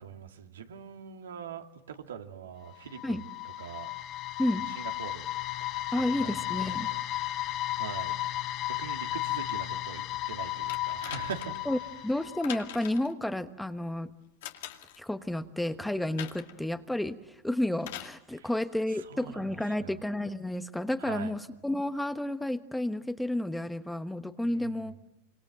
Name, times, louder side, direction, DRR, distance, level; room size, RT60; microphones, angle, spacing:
voice 1, 0.0-3.9 4.5-5.3 6.0-8.1 8.7-12.2 18.3-20.1 21.0-21.4 24.4-25.0, right 7 dB, 85° right, 5 dB, 2.7 m, -43 dB
sound 1, 2.7-12.7, left 15 dB, 40° left, 1.0 m, -34 dB
voice 2, 5.9-6.9 11.7-11.8 12.0-14.1 15.0-24.9, left 1 dB, 5° left, 10 dB, 1.3 m, -31 dB
sound 2, 10.7-11.7 12.4-13.1 14.4-15.0 16.2-16.6 17.8-18.2 19.2-19.3, left 12 dB, 70° left, 2.4 m, -42 dB
26.5 x 25.5 x 7.8 m, 1.0 s
hypercardioid pair, 110°, 0 cm